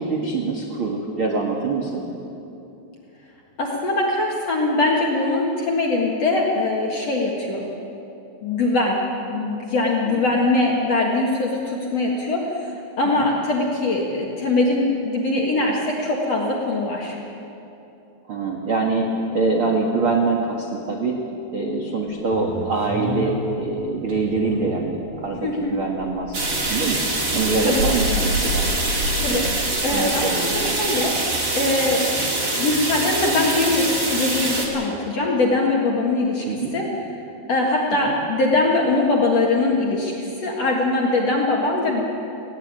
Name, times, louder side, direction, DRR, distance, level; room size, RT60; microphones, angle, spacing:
voice 1, 0.0-2.0 10.0-10.2 13.2-13.3 18.3-21.2 21.5-27.0 27.3-28.7 29.3-29.4 29.9-30.7 36.5-36.7, right 3 dB, 80° right, 0 dB, 1.2 m, -24 dB
voice 2, 3.6-7.7 8.4-9.0 9.3-17.2 25.4-25.8 27.6-28.1 29.2-31.2 31.5-36.5 36.7-36.9 37.5-42.0, left 2 dB, 55° left, -2 dB, 1.9 m, -22 dB
sound 1, 22.2-25.3 25.6-30.6, equal, 45° right, 4.1 m, -30 dB
sound 2, 26.3-34.7, right 2 dB, 30° right, 1.7 m, -24 dB
19.0 x 17.0 x 9.0 m, 2.8 s
omnidirectional pair, 5.4 m